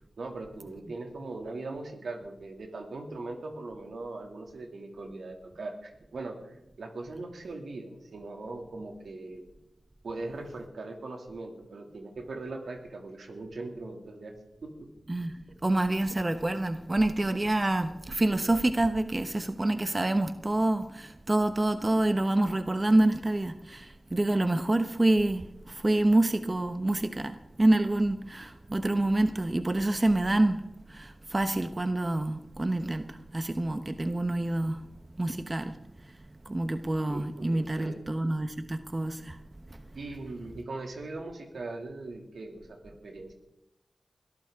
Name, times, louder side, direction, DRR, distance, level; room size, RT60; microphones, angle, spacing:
voice 1, 0.2-9.4 10.0-14.3 14.6-14.9 37.1-38.0 39.9-43.3, right 2 dB, 80° right, 3 dB, 2.5 m, -40 dB
voice 2, 15.6-30.6 30.9-33.0 33.3-34.8 35.2-35.7 36.5-39.4, right 1 dB, 35° right, 8 dB, 1.1 m, -27 dB
21.5 x 13.5 x 3.7 m, 0.87 s
cardioid pair, 40°, 0 cm